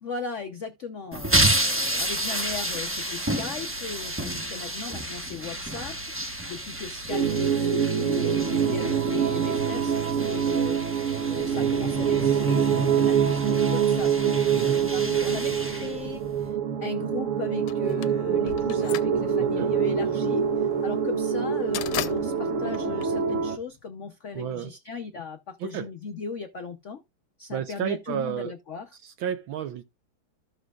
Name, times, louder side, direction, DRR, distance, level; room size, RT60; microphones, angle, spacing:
voice 1, 0.0-6.0 6.2-27.0 27.4-28.9, left 5 dB, 60° left, 0.7 m, -37 dB
sound 1, 1.1-16.5, right 1 dB, 10° right, 0.6 m, -31 dB
sound 2, 7.1-23.6, right 7 dB, 45° right, 1.2 m, -25 dB
sound 3, 17.7-23.8, left 12 dB, 80° left, 1.6 m, -37 dB
voice 2, 19.4-19.7 24.3-24.7 25.6-25.9 27.5-28.5 28.9-29.8, right 10 dB, 75° right, 1.4 m, -32 dB
14.5 x 6.3 x 2.4 m
omnidirectional pair, 2.3 m